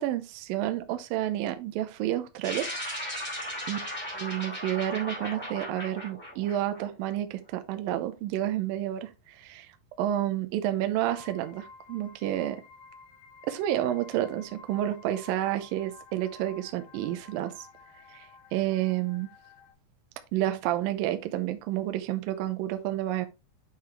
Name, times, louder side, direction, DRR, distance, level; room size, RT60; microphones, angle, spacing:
voice 1, 0.0-2.7 3.7-3.8 4.1-9.7 10.0-12.6 13.5-17.5 18.1-19.3 20.3-23.3, right 13 dB, 85° right, 2.0 m, -30 dB
sound 1, 2.4-7.1, equal, 5° left, 3.2 m, -37 dB
sound 2, 11.1-19.7, left 4 dB, 65° left, 3.2 m, -53 dB
8.7 x 5.7 x 3.1 m
omnidirectional pair, 5.2 m